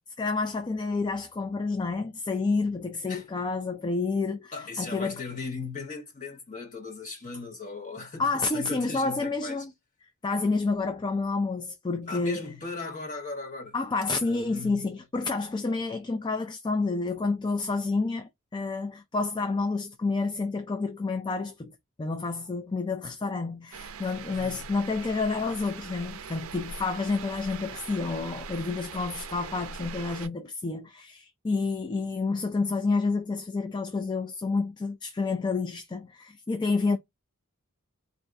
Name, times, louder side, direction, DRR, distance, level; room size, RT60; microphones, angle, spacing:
voice 1, 0.2-5.2 8.2-9.7 10.2-12.5 13.7-37.0, left 3 dB, 20° left, 0.3 m, -29 dB
voice 2, 4.5-9.6 12.1-13.7 14.2-14.9 24.3-24.7, left 4 dB, 35° left, 1.4 m, -37 dB
sound 1, 23.7-30.3, right 5 dB, 75° right, 0.4 m, -41 dB
4.1 x 2.6 x 2.3 m
head